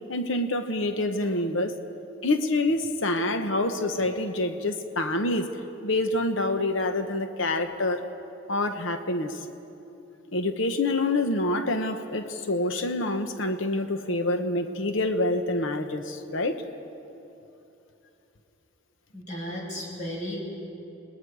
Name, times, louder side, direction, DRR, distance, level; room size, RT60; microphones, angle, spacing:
voice 1, 0.1-1.8 2.2-5.5 5.8-8.0 8.5-9.4 10.3-16.6, left 2 dB, 65° left, 7 dB, 1.0 m, -27 dB
voice 2, 19.1-20.4, equal, 35° left, -2 dB, 5.1 m, -34 dB
28.5 x 20.0 x 4.8 m, 2.9 s
head